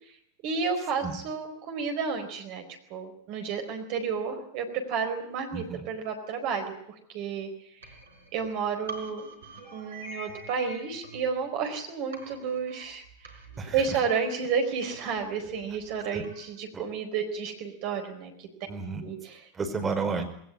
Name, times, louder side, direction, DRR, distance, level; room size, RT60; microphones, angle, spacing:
voice 1, 0.4-2.6 2.9-6.7 7.1-7.5 8.3-9.2 9.7-13.0 13.7-18.5 19.0-19.4, right 6 dB, 45° right, 5 dB, 4.4 m, -31 dB
voice 2, 5.5-5.9 13.6-14.0 16.1-16.2 16.7-16.8 18.7-19.0 19.5-20.3, right 4 dB, 15° right, 4 dB, 5.1 m, -32 dB
sound 1, 7.8-11.8 12.1-16.5, right 2 dB, 65° right, 4.8 m, -47 dB
20.5 x 19.0 x 9.7 m, 0.67 s
figure-of-eight pair, 90°, 0 cm